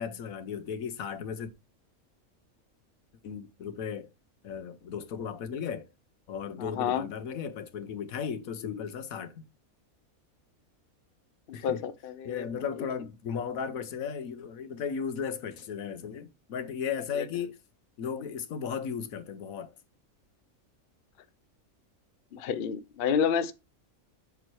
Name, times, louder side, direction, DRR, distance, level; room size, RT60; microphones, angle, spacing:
voice 1, 0.0-1.5 3.2-4.1 4.4-5.9 6.3-9.4 11.5-11.9 12.2-17.6 18.0-19.7, left 7 dB, 75° left, 1.3 m, -35 dB
voice 2, 6.6-7.0 11.5-12.5 22.3-23.5, left 7 dB, 55° left, 0.7 m, -29 dB
7.5 x 4.4 x 4.6 m
omnidirectional pair, 1.5 m